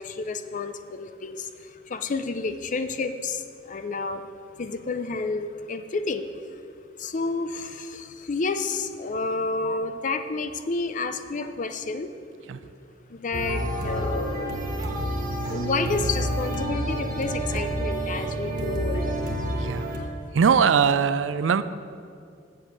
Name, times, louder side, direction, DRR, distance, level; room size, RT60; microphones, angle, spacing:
voice 1, 0.0-4.3 4.6-6.3 6.5-6.6 7.0-12.1 13.1-14.6 15.4-19.2, left 3 dB, 45° left, 10 dB, 0.5 m, -30 dB
sound 1, 13.3-20.0, right 1 dB, 50° right, 1.2 m, -29 dB
voice 2, 19.6-19.9 20.3-21.6, right 6 dB, 80° right, 13 dB, 0.4 m, -21 dB
7.6 x 7.1 x 6.5 m, 2.3 s
head